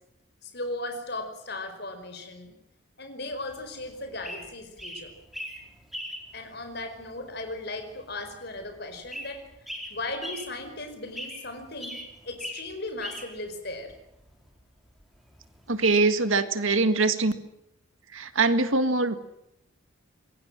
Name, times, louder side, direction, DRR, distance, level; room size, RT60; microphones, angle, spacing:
voice 1, 0.4-2.5 3.0-5.1 6.3-9.4 9.9-13.9, left 2 dB, 50° left, 7 dB, 5.1 m, -37 dB
sound 1, 3.3-16.0, equal, ahead, 4.3 m, -41 dB
voice 2, 15.7-17.3 18.1-19.2, right 3 dB, 75° right, 11 dB, 1.9 m, -23 dB
26.5 x 22.5 x 7.6 m, 0.84 s
head